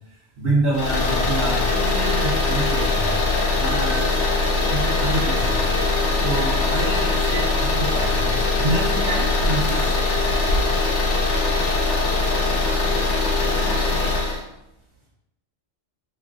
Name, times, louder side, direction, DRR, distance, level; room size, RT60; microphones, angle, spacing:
voice 1, 0.4-3.2 3.6-4.1 4.7-5.6 6.2-9.9, right 1 dB, 55° right, -10 dB, 1.2 m, -27 dB
sound 1, 0.7-14.4, left 3 dB, 85° left, 1.0 m, -21 dB
3.1 x 2.5 x 3.6 m, 0.85 s
omnidirectional pair, 1.2 m